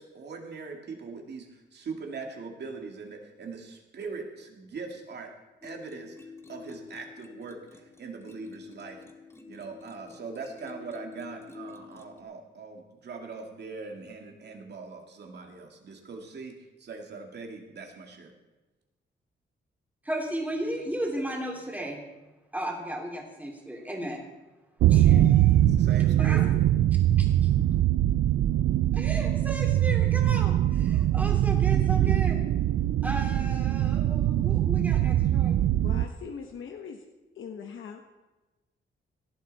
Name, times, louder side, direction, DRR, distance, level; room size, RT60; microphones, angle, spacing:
voice 1, 0.0-5.3 5.6-6.2 6.5-9.0 9.5-18.3 25.7-26.4, right 4 dB, 55° right, 2 dB, 2.4 m, -41 dB
sound 1, 5.6-12.2, left 4 dB, 10° left, 1.3 m, -48 dB
voice 2, 20.0-22.0 22.5-24.2 24.9-25.6 26.2-26.5 27.2-27.5 28.9-32.5 33.0-35.6, right 1 dB, 10° right, 0 dB, 3.0 m, -35 dB
sound 2, 24.8-36.1, right 12 dB, 85° right, 0.4 m, -22 dB
voice 3, 26.2-26.9 35.8-37.0 37.3-38.0, left 6 dB, 75° left, 3 dB, 1.2 m, -41 dB
18.0 x 11.5 x 4.2 m, 1.1 s
wide cardioid pair, 130°, 20 cm